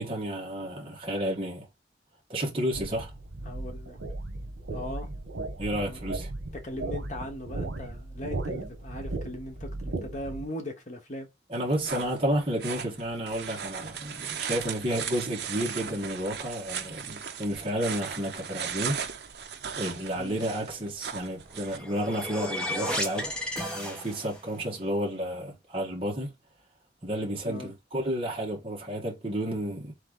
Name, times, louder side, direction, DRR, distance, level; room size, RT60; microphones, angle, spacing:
voice 1, 0.0-1.7 2.3-3.1 5.6-6.3 11.5-19.0 19.7-23.4 23.7-26.3 27.0-29.9, equal, 30° right, 1.5 m, -31 dB
sound 1, 2.7-10.4, right 2 dB, 90° right, 1.0 m, -36 dB
voice 2, 3.4-4.0 4.7-5.1 5.9-6.0 6.5-11.3 20.1-20.4 27.4-27.7, left 1 dB, 40° left, 1.2 m, -39 dB
sound 2, 11.5-21.8, right 7 dB, 60° right, 0.6 m, -37 dB
sound 3, 21.5-24.5, left 1 dB, 5° left, 1.0 m, -33 dB
3.8 x 3.3 x 3.8 m
head